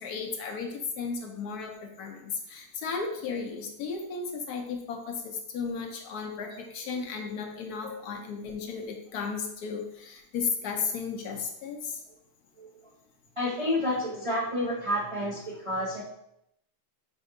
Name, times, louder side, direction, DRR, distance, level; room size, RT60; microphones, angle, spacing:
voice 1, 0.0-12.0, left 5 dB, 70° left, 3 dB, 1.1 m, -34 dB
voice 2, 13.4-16.0, left 1 dB, 35° right, -6 dB, 0.5 m, -30 dB
5.2 x 2.7 x 3.7 m, 0.76 s
omnidirectional pair, 1.8 m